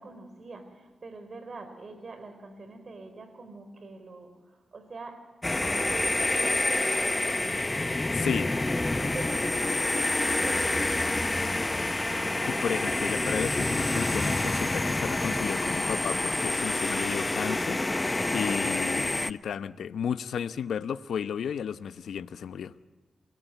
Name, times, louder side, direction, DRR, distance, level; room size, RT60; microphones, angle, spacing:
voice 1, 0.0-5.3 5.6-7.8 8.1-11.5, right 3 dB, 55° right, 4.7 m, -44 dB
sound 1, 5.4-19.3, left 2 dB, 25° left, 0.8 m, -27 dB
voice 2, 8.1-8.5 12.5-17.8 18.3-22.7, left 8 dB, 80° left, 0.8 m, -33 dB
29.5 x 19.5 x 9.2 m
cardioid pair, 55°, 0 cm